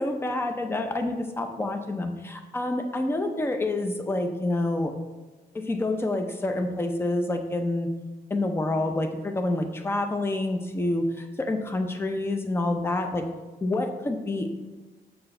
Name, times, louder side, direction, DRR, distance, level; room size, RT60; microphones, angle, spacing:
voice 1, 0.0-4.9 5.5-7.9 8.3-13.2 13.6-14.5, left 2 dB, 15° left, 5 dB, 0.5 m, -28 dB
6.7 x 4.4 x 3.3 m, 1.2 s
wide cardioid pair, 155°, 17 cm